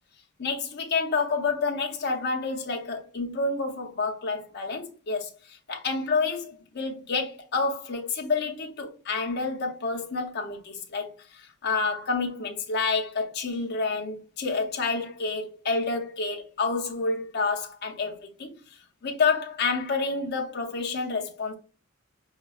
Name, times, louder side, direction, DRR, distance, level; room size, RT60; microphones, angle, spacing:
voice 1, 0.4-18.6 19.0-21.5, left 4 dB, 55° left, 0.7 m, -29 dB
4.9 x 2.2 x 2.3 m
head